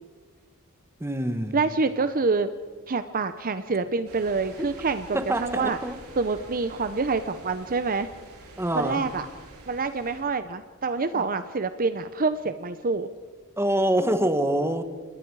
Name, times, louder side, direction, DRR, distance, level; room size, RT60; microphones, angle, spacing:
voice 1, 1.0-1.6 5.1-6.0 8.6-9.1 11.1-11.2 13.6-14.8, right 1 dB, 10° right, 10 dB, 1.3 m, -25 dB
voice 2, 1.5-2.5 2.9-5.8 6.2-8.1 8.7-9.3 9.7-13.1, right 4 dB, 40° right, 11 dB, 0.7 m, -26 dB
sound 1, 4.1-10.2, right 2 dB, 80° right, 6.1 m, -47 dB
28.5 x 20.5 x 4.8 m, 1.4 s
head